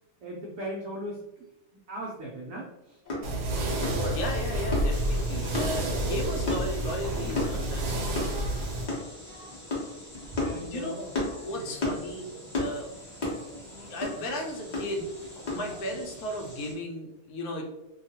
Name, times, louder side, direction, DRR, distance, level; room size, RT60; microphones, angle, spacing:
voice 1, 0.2-1.2 1.9-3.0 10.4-11.1 11.5-11.8, right 1 dB, 65° right, -3 dB, 0.9 m, -38 dB
sound 1, 3.0-15.8, left 2 dB, 40° left, 0.6 m, -34 dB
sound 2, 3.2-8.9, right 1 dB, 85° right, 1.2 m, -29 dB
voice 2, 4.0-8.5 10.6-10.9 11.4-12.3 12.6-12.9 13.6-15.1 15.4-17.6, equal, 70° left, 1 dB, 1.0 m, -35 dB
sound 3, 4.9-16.7, equal, 20° left, 0.9 m, -46 dB
2.8 x 2.3 x 2.7 m, 0.90 s
omnidirectional pair, 1.7 m